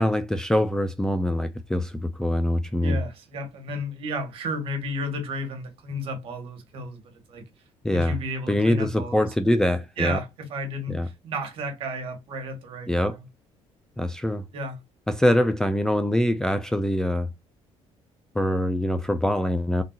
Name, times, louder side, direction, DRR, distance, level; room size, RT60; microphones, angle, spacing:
voice 1, 0.0-3.0 7.8-8.2 8.5-10.2 10.9-11.1 12.9-13.2 14.0-14.4 15.1-17.3 18.3-19.8, left 1 dB, 5° left, 0.3 m, -24 dB
voice 2, 2.7-7.4 7.9-9.3 10.0-13.2 14.5-14.8, equal, 55° right, 1.5 m, -33 dB
3.7 x 2.7 x 2.4 m
cardioid pair, 145°, 11 cm